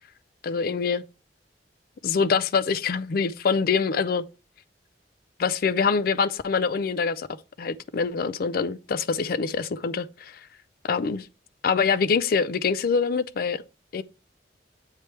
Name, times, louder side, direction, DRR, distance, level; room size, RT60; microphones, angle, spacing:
voice 1, 0.4-1.0 2.0-4.2 5.4-7.3 7.6-10.4 10.8-11.3 11.6-13.6 13.9-14.0, left 5 dB, 55° left, 0.4 m, -25 dB
8.3 x 3.2 x 4.4 m
head